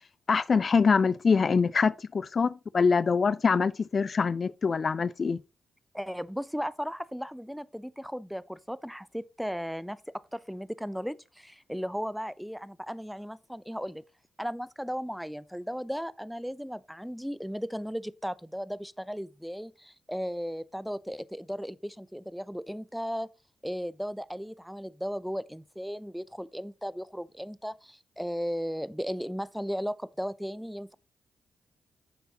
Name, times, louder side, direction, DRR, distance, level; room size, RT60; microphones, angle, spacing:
voice 1, 0.3-5.4, left 5 dB, 50° left, 0.3 m, -24 dB
voice 2, 5.9-14.0 14.4-23.3 23.6-31.0, equal, ahead, 0.6 m, -36 dB
9.5 x 6.8 x 2.9 m
hypercardioid pair, 40°, 0 cm